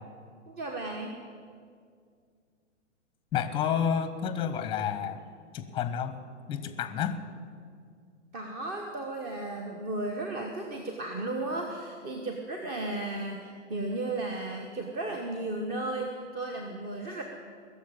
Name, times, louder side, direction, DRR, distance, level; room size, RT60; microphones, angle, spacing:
voice 1, 0.5-1.2 8.3-17.2, right 2 dB, 25° right, 2 dB, 1.2 m, -34 dB
voice 2, 3.3-5.2 5.5-6.2 6.5-7.2, left 8 dB, 15° left, 11 dB, 0.8 m, -30 dB
17.5 x 7.2 x 8.9 m, 2.2 s
figure-of-eight pair, 115°, 37 cm